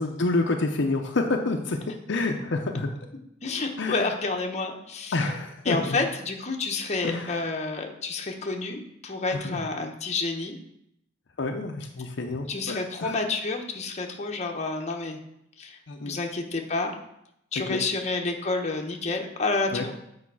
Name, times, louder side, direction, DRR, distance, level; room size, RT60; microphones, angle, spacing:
voice 1, 0.0-1.8 2.1-2.9 3.8-4.1 5.1-6.0 7.0-7.5 9.3-9.6 11.4-13.1 15.9-16.2 17.7-17.8 19.7-19.9, left 3 dB, 65° left, 3 dB, 0.7 m, -28 dB
voice 2, 3.4-5.2 5.6-10.6 12.5-15.2 15.6-15.8 16.0-16.9 17.5-19.9, left 3 dB, 35° left, 2 dB, 0.9 m, -29 dB
8.4 x 4.7 x 4.7 m, 0.79 s
head